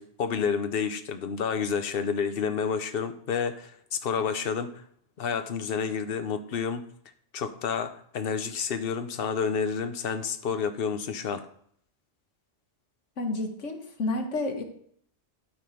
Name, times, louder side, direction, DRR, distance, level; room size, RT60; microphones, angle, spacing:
voice 1, 0.0-4.7 5.2-6.8 7.3-11.5, left 6 dB, 55° left, 9 dB, 1.0 m, -29 dB
voice 2, 13.2-14.6, left 2 dB, 90° left, 4 dB, 1.7 m, -30 dB
12.5 x 4.9 x 5.1 m, 0.64 s
omnidirectional pair, 1.2 m